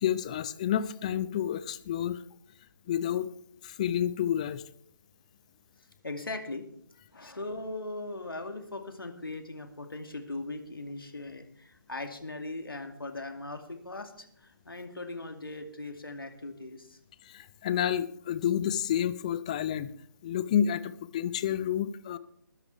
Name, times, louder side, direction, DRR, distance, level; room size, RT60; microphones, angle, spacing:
voice 1, 0.0-2.2 2.9-3.3 3.6-4.6 17.2-19.9 20.2-22.2, left 10 dB, 20° left, 15 dB, 0.4 m, -29 dB
voice 2, 6.0-6.6 7.1-17.0, left 2 dB, 80° left, 5 dB, 2.4 m, -39 dB
20.5 x 10.5 x 3.4 m, 0.66 s
figure-of-eight pair, 150°, 12 cm